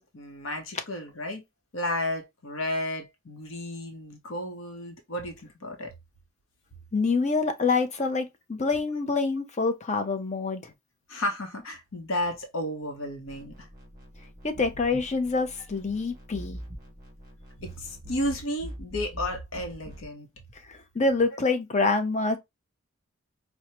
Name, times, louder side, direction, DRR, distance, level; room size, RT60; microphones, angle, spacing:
voice 1, 0.0-1.4 1.7-5.9 11.1-13.7 17.6-20.3, left 1 dB, 60° left, 0.9 m, -33 dB
voice 2, 6.9-10.7 14.4-16.6 20.7-22.4, left 3 dB, 30° left, 0.6 m, -26 dB
sound 1, 13.3-20.1, equal, 15° right, 1.5 m, -44 dB
4.6 x 2.1 x 2.8 m
head